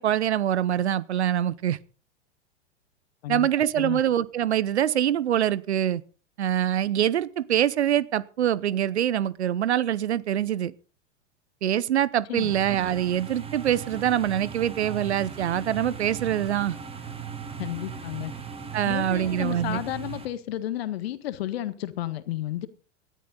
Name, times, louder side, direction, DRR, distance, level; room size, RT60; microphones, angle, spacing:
voice 1, 0.0-1.8 3.3-6.0 6.4-10.7 11.6-16.8 18.7-19.8, right 10 dB, 65° right, 0.9 m, -24 dB
sound 1, 12.4-20.2, right 6 dB, 15° right, 2.5 m, -38 dB
voice 2, 17.6-18.3 18.8-22.7, left 13 dB, 55° left, 1.7 m, -32 dB
19.0 x 13.0 x 3.9 m
figure-of-eight pair, 90°, 35 cm